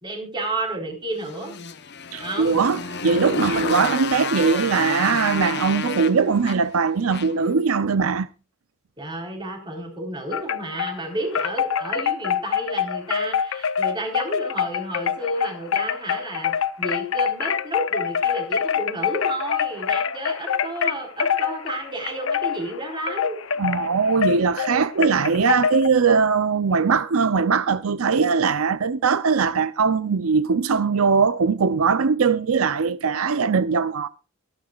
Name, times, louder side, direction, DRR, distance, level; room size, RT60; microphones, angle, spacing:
voice 1, 0.0-1.6 2.2-2.6 3.4-3.7 9.0-23.4 25.0-25.4, right 1 dB, 20° right, 4.0 m, -31 dB
Motorcycle, 1.2-7.5, left 5 dB, 50° left, 1.0 m, -30 dB
voice 2, 2.1-8.3 23.6-34.1, right 5 dB, 80° right, 0.6 m, -21 dB
Wind chime, 10.3-11.0 11.3-25.9, left 7 dB, 70° left, 0.7 m, -25 dB
23.5 x 8.9 x 2.4 m
head